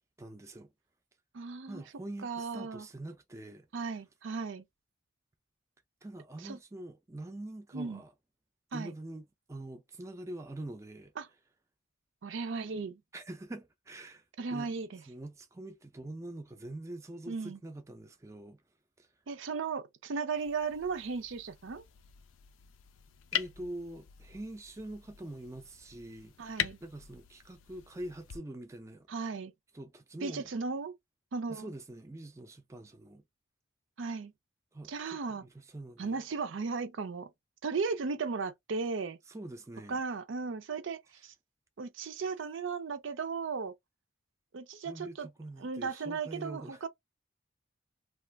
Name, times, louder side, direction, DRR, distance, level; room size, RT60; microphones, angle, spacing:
voice 1, 0.2-0.7 1.7-3.7 6.0-8.1 8.7-11.1 13.1-14.2 14.5-14.7 15.1-18.6 19.0-19.1 23.3-29.1 29.7-30.5 31.5-33.2 34.7-36.2 39.3-40.0 44.8-46.8, right 1 dB, 15° right, 0.4 m, -44 dB
voice 2, 1.3-1.8 2.2-2.9 3.7-4.6 6.4-6.6 7.7-8.0 8.7-8.9 11.2-11.3 12.2-13.0 14.4-15.0 17.3-17.6 19.3-21.8 26.4-26.8 29.1-29.5 30.2-30.9 31.3-31.7 34.0-34.3 34.9-35.4 36.0-37.3 37.6-39.2 39.9-41.3 41.8-43.7 44.5-45.3 45.6-46.9, right 4 dB, 75° right, 0.5 m, -36 dB
sound 1, 20.4-28.4, left 10 dB, 80° left, 0.4 m, -42 dB
2.4 x 2.3 x 3.2 m
head